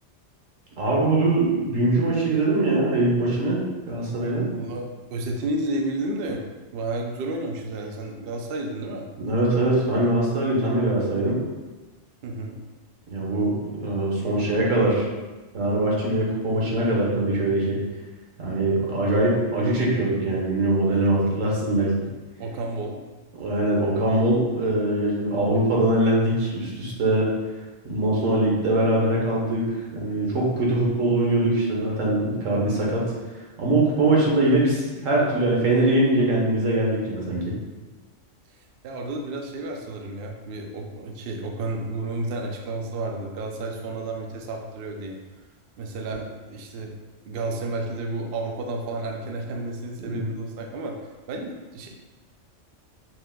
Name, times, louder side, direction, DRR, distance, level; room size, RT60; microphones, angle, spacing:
voice 1, 0.8-3.6 3.9-4.5 9.2-11.4 13.1-15.1 15.5-17.8 18.4-21.9 23.4-27.3 27.8-29.7 29.9-33.0 33.6-37.5 50.0-50.3, right 1 dB, 80° right, -4 dB, 1.3 m, -22 dB
voice 2, 4.5-9.1 12.2-12.6 21.0-21.5 22.4-23.0 38.8-45.2 45.8-46.9 47.2-51.0 51.3-51.9, right 2 dB, 60° right, 1 dB, 0.6 m, -31 dB
4.4 x 3.6 x 2.2 m, 1.2 s
omnidirectional pair, 1.3 m